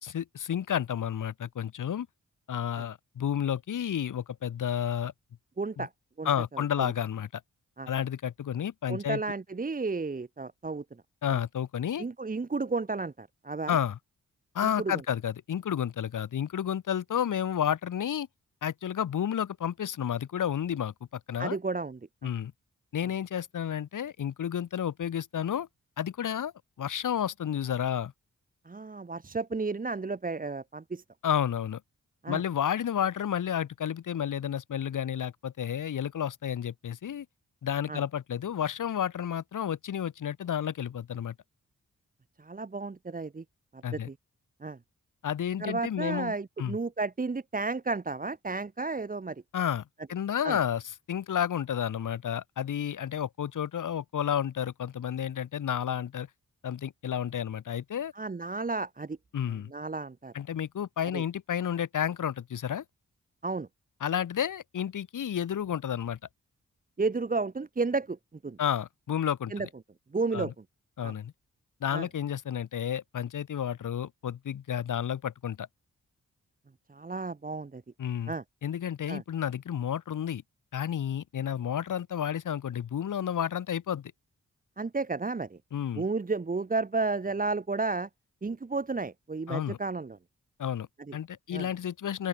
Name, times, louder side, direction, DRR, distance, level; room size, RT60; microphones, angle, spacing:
voice 1, 0.0-2.1 2.5-5.1 5.8-5.9 6.2-7.4 7.9-9.2 11.2-12.0 13.7-14.0 14.5-18.3 18.6-21.6 22.2-22.5 22.9-25.7 26.0-26.5 26.8-28.1 31.2-31.8 32.3-37.3 37.6-41.3 43.8-44.1 45.2-46.8 49.5-50.8 51.1-56.3 56.6-58.1 59.3-59.7 60.3-62.8 64.0-66.2 68.6-69.5 70.3-70.5 71.0-71.3 71.8-75.7 78.0-78.3 78.6-80.4 80.7-84.1 85.7-86.1 89.5-89.8 90.6-92.3, left 9 dB, 85° left, 2.4 m, -31 dB
voice 2, 5.6-5.9 6.2-6.9 7.8-7.9 8.9-10.8 11.3-11.4 12.0-13.8 14.8-14.9 21.4-22.3 28.6-31.0 32.2-32.4 37.9-38.0 42.4-43.4 43.7-44.1 44.6-44.8 45.6-49.4 50.4-50.6 58.1-59.2 59.7-60.3 61.1-61.2 63.4-63.7 67.0-68.2 68.4-68.6 69.5-69.7 70.1-70.5 71.0-71.1 71.9-72.1 76.9-77.8 78.3-78.4 79.1-79.2 84.8-85.6 85.9-88.1 88.4-90.2 91.1-91.2 91.5-91.7, right 3 dB, 30° right, 1.4 m, -32 dB
open air
cardioid pair, 90°, 30 cm